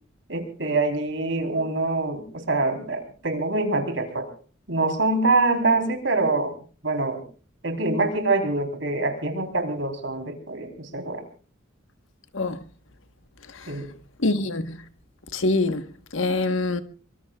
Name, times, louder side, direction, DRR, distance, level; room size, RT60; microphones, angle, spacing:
voice 1, 0.3-4.3 4.7-6.5 6.8-7.2 7.6-11.2 13.7-13.9, right 2 dB, 65° right, 4.0 m, -25 dB
voice 2, 14.2-14.8 15.3-15.8 16.1-16.8, left 2 dB, 80° left, 1.4 m, -24 dB
24.5 x 24.0 x 2.4 m
head